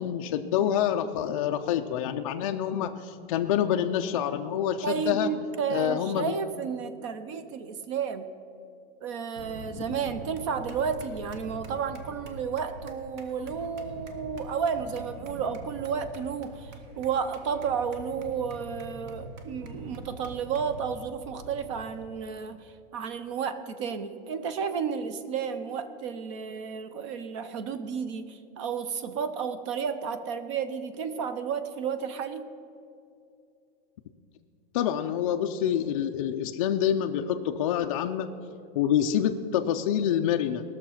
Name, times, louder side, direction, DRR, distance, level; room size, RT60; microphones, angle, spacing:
voice 1, 0.0-5.3 5.7-6.4 34.7-38.3 38.8-40.6, left 9 dB, 35° left, 4 dB, 0.4 m, -27 dB
voice 2, 4.8-8.3 9.0-32.5, right 6 dB, 30° right, 11 dB, 0.5 m, -32 dB
sound 1, 9.4-22.0, right 3 dB, 50° right, 1.2 m, -44 dB
18.5 x 6.5 x 5.6 m, 2.6 s
supercardioid pair, 170°, 30 cm